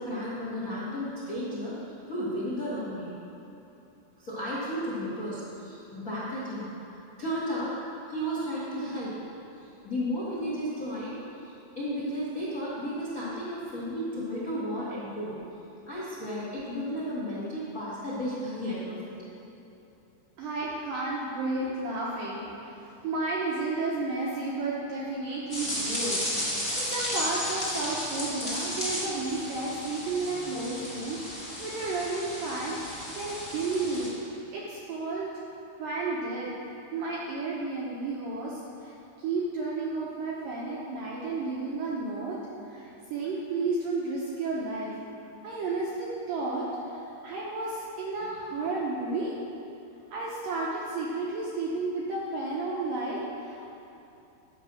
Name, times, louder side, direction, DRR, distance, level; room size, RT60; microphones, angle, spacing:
voice 1, 0.0-1.7 2.1-3.1 4.2-7.8 8.1-9.1 9.8-15.3 15.9-19.2, equal, 75° left, -8 dB, 0.8 m, -33 dB
voice 2, 20.4-34.1 34.5-35.3 35.8-36.5 36.9-38.9 39.2-42.4 42.7-44.9 45.4-49.4 50.1-53.6, right 3 dB, 75° right, -5 dB, 2.0 m, -32 dB
sound 1, 25.5-34.1, left 1 dB, 25° left, 1.1 m, -34 dB
10.5 x 6.7 x 6.2 m, 2.9 s
omnidirectional pair, 5.2 m